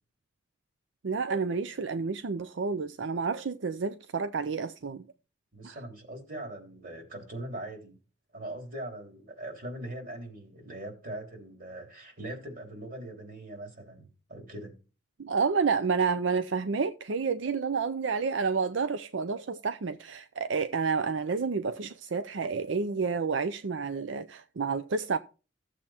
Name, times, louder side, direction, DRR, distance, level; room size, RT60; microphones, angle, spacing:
voice 1, 1.0-5.1 5.6-5.8 15.2-25.2, right 5 dB, 85° right, 0.6 m, -30 dB
voice 2, 5.5-8.0 8.3-14.8, right 1 dB, 50° right, 3.4 m, -41 dB
15.0 x 7.5 x 4.3 m
head